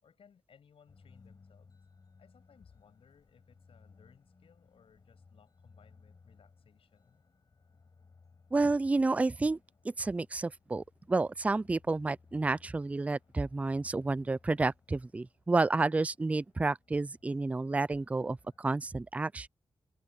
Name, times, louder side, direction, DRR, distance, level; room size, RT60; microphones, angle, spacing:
voice 1, 0.0-1.8 2.2-7.2, left 7 dB, 70° left, 7.7 m, -63 dB
sound 1, 0.9-18.6, left 4 dB, 40° left, 5.7 m, -62 dB
voice 2, 8.5-9.6 9.8-19.5, right 3 dB, 15° right, 0.3 m, -30 dB
wide cardioid pair, 130°, 10 cm